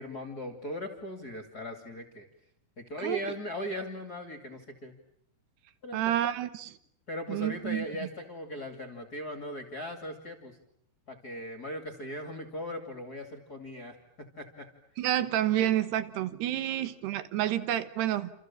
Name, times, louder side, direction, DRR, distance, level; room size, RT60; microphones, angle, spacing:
voice 1, 0.0-2.3 2.8-5.0 5.8-6.2 7.1-10.6 11.1-14.7 15.6-15.7 16.3-16.4 16.7-16.8, equal, 30° left, 5 dB, 2.3 m, -39 dB
voice 2, 5.9-6.8 7.3-7.8 15.0-18.3, right 12 dB, 80° right, 13 dB, 3.4 m, -29 dB
28.5 x 28.0 x 7.4 m, 0.68 s
omnidirectional pair, 4.7 m